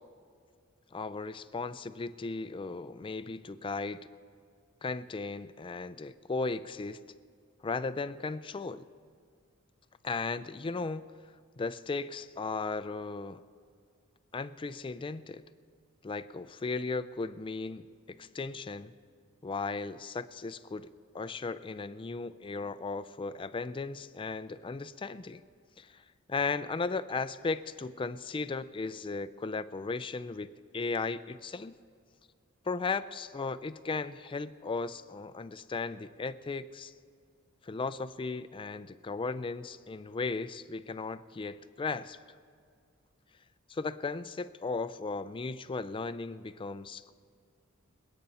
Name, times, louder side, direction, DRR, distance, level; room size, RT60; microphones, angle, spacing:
voice 1, 0.9-4.1 4.8-7.0 7.6-8.8 10.0-11.1 11.6-13.4 14.3-15.4 16.0-18.9 19.4-20.9 21.1-25.4 25.8-26.0 26.3-31.7 32.7-36.9 37.6-42.2 43.7-47.1, left 4 dB, 25° left, 13 dB, 0.4 m, -36 dB
26.5 x 9.0 x 4.2 m, 2.1 s
head